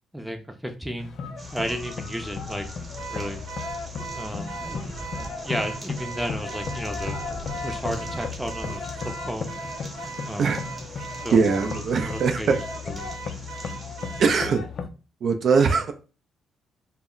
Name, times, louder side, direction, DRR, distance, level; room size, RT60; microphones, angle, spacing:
voice 1, 0.1-1.1 1.5-2.7 3.1-3.4 4.1-7.2 7.6-9.5 10.3-10.6 11.2-11.4 12.0-12.6 12.9-13.0, equal, 5° right, 5 dB, 0.5 m, -33 dB
sound 1, 1.0-14.9, left 5 dB, 60° left, 0.4 m, -35 dB
sound 2, 1.4-14.2, right 2 dB, 30° right, 0.9 m, -43 dB
Car / Alarm, 3.0-14.4, right 5 dB, 85° right, 0.7 m, -40 dB
voice 2, 11.3-12.6 14.2-14.6 15.2-15.9, right 5 dB, 60° right, 6 dB, 0.4 m, -21 dB
2.1 x 2.1 x 3.7 m, 0.33 s
cardioid pair, 90°, 0 cm